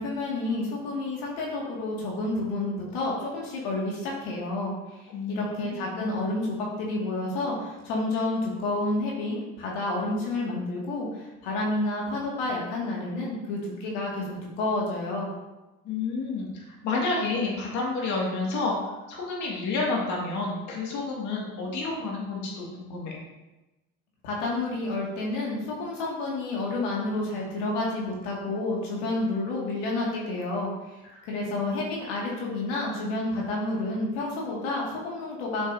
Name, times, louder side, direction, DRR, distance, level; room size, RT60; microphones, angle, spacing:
voice 1, 0.0-4.7 5.3-11.1 11.4-15.3 24.2-30.7 31.3-35.7, left 2 dB, 90° left, -3 dB, 2.1 m, -30 dB
voice 2, 5.1-6.1 15.8-23.1 31.1-31.7, left 3 dB, 70° left, -3 dB, 2.1 m, -30 dB
8.1 x 5.4 x 2.7 m, 1.0 s
supercardioid pair, 90°, 31 cm